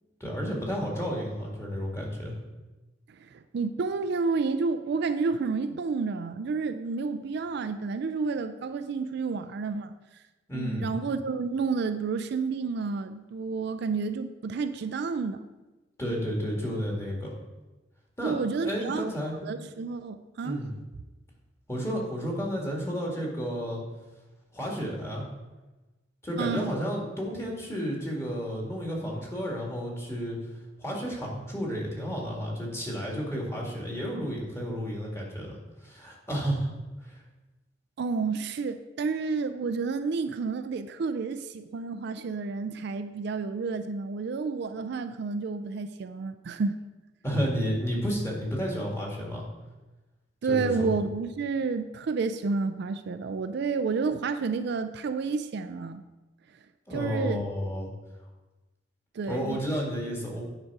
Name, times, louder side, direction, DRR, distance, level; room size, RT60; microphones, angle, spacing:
voice 1, 0.2-2.4 10.5-10.9 16.0-17.3 18.2-18.3 18.6-19.3 20.4-20.7 21.7-23.8 24.5-25.2 26.2-30.4 30.8-36.7 37.0-37.2 47.2-49.4 50.5-50.9 56.9-57.9 59.3-60.4, equal, 15° left, -2 dB, 1.8 m, -31 dB
voice 2, 3.1-9.9 10.5-15.4 18.2-19.1 19.4-20.6 26.4-26.7 38.0-46.8 50.4-56.0 56.9-57.5 59.1-59.6, right 4 dB, 60° right, 9 dB, 0.4 m, -30 dB
8.8 x 5.0 x 4.7 m, 1.1 s
head